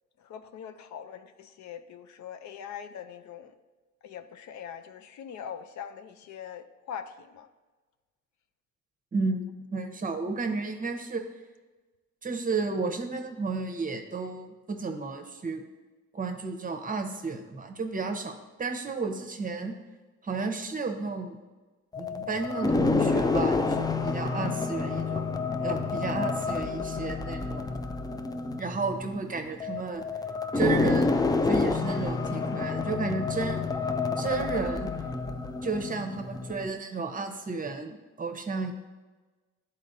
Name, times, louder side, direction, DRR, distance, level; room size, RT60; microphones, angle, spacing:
voice 1, 0.2-3.5 4.0-7.5, left 8 dB, 70° left, 9 dB, 0.5 m, -42 dB
voice 2, 9.1-11.2 12.2-15.6 16.1-19.7 20.2-21.4 22.0-25.2 25.6-27.8 28.6-30.0 30.5-33.6 34.2-34.9 35.6-38.7, right 4 dB, 25° right, 6 dB, 0.8 m, -32 dB
sound 1, 21.9-36.7, left 3 dB, 15° left, 0.3 m, -29 dB
10.5 x 4.2 x 2.7 m, 1.3 s
cardioid pair, 90°, 30 cm